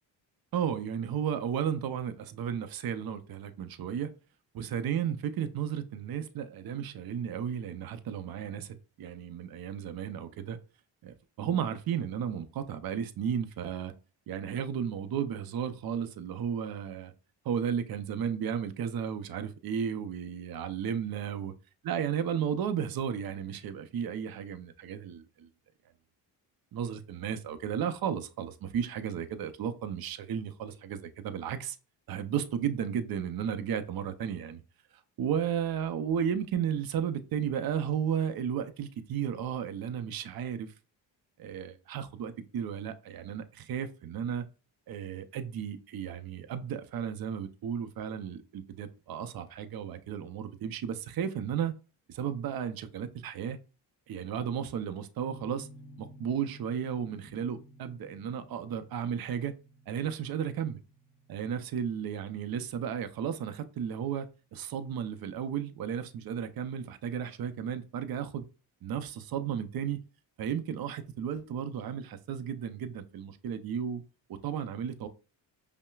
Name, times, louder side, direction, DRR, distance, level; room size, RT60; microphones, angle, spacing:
voice 1, 0.5-4.1 4.5-10.6 11.0-13.9 14.3-17.1 17.4-21.5 21.8-25.5 26.7-31.8 32.1-34.6 35.2-40.7 41.4-44.5 44.9-51.7 52.1-53.6 54.1-55.7 56.0-59.5 59.9-60.8 61.3-64.3 64.5-68.4 68.8-70.0 70.4-74.0 74.4-75.1, right 8 dB, 50° right, 0.6 m, -34 dB
sound 1, 55.2-63.9, equal, 20° right, 1.5 m, -54 dB
5.3 x 2.2 x 2.3 m
supercardioid pair, 70°, 47 cm